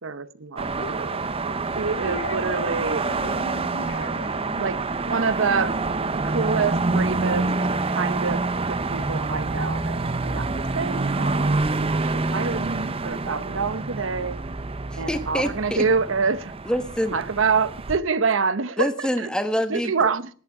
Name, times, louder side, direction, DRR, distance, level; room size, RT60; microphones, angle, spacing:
voice 1, 0.0-0.7 1.0-1.1 1.8-3.0 4.6-5.8 6.2-7.5 7.9-8.4 8.7-10.5 10.7-11.6 12.0-14.4 14.9-16.5 17.1-19.1 19.7-20.3, right 5 dB, 70° right, 0.8 m, -26 dB
sound 1, 0.6-18.0, right 3 dB, 30° right, 0.8 m, -27 dB
voice 2, 0.7-5.2, left 2 dB, 80° left, 2.1 m, -38 dB
voice 3, 14.9-15.9 16.6-17.2 18.8-20.1, equal, 5° left, 1.4 m, -26 dB
16.5 x 11.5 x 4.8 m
head